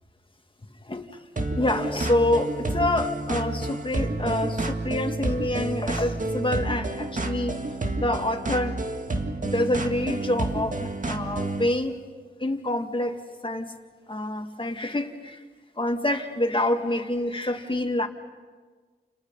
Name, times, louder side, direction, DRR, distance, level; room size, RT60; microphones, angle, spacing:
voice 1, 0.8-1.2 1.6-7.6 7.9-8.8 9.4-12.0 12.4-13.7 14.1-15.4 15.8-18.1, left 1 dB, 30° left, 5 dB, 2.3 m, -27 dB
sound 1, 1.4-11.7, right 2 dB, 50° right, 2.0 m, -29 dB
30.0 x 29.5 x 5.7 m, 1.4 s
cardioid pair, 60°, 17 cm